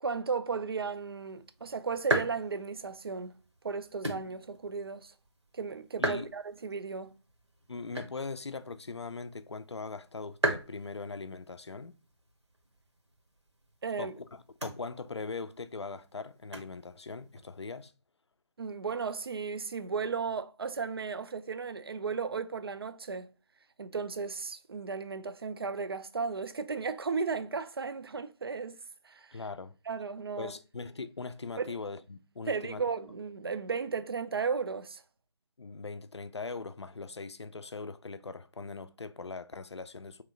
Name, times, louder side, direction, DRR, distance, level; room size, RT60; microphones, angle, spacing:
voice 1, 0.0-3.3 3.6-5.1 5.5-7.1 13.8-14.1 18.6-23.3 23.8-28.8 29.0-29.3 29.9-30.5 31.6-31.7 32.5-35.0, right 5 dB, 60° right, 0.4 m, -35 dB
sound 1, 0.8-17.9, right 1 dB, 80° right, 1.0 m, -40 dB
voice 2, 6.0-6.3 7.7-11.9 14.0-17.9 29.3-29.8 30.4-32.8 35.6-40.2, left 4 dB, 75° left, 0.4 m, -40 dB
3.3 x 3.0 x 3.7 m
figure-of-eight pair, 150°, 14 cm